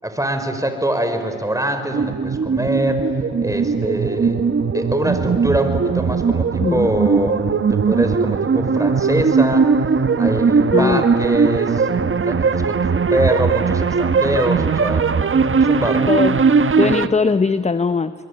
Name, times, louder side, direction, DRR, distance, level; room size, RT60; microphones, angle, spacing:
voice 1, 0.0-3.0 3.4-4.4 4.7-9.7 10.2-11.9 12.2-15.1 15.5-16.1, right 1 dB, 10° right, 7 dB, 5.0 m, -23 dB
sound 1, 1.9-17.1, right 5 dB, 40° right, 1.3 m, -18 dB
voice 2, 10.7-11.0 16.1-16.4 16.8-18.1, left 4 dB, 20° left, 13 dB, 0.8 m, -19 dB
27.5 x 21.5 x 9.9 m, 2.4 s
hypercardioid pair, 50°, 33 cm